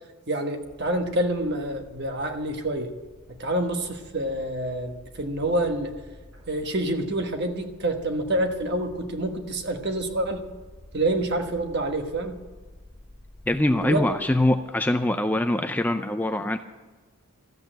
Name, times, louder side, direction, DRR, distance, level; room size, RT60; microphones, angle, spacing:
voice 1, 0.3-2.9 3.4-6.0 6.5-10.4 10.9-12.4 13.7-14.0, right 1 dB, 50° right, 5 dB, 1.3 m, -27 dB
sound 1, 0.6-14.6, left 1 dB, 85° right, 4.8 m, -50 dB
voice 2, 13.5-16.6, left 1 dB, 10° left, 7 dB, 0.4 m, -23 dB
13.5 x 8.4 x 9.0 m, 1.3 s
head